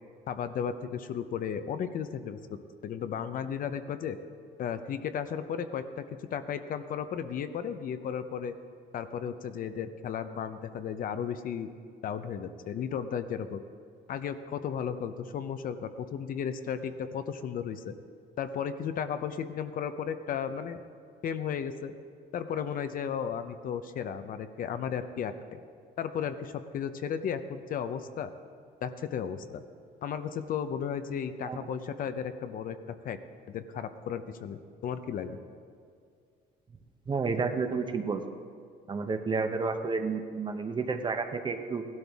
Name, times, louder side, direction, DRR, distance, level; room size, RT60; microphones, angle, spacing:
voice 1, 0.3-4.2 4.6-6.0 6.3-8.5 8.9-11.7 12.0-13.6 14.1-17.9 18.4-20.8 21.2-21.9 22.3-25.6 26.0-28.3 28.8-29.6 30.0-32.8 33.0-33.2 33.5-35.4, left 7 dB, 55° left, 10 dB, 0.7 m, -34 dB
voice 2, 37.1-38.2 38.9-41.8, right 4 dB, 25° right, 7 dB, 0.8 m, -31 dB
16.5 x 12.0 x 3.5 m, 2.2 s
cardioid pair, 110°, 17 cm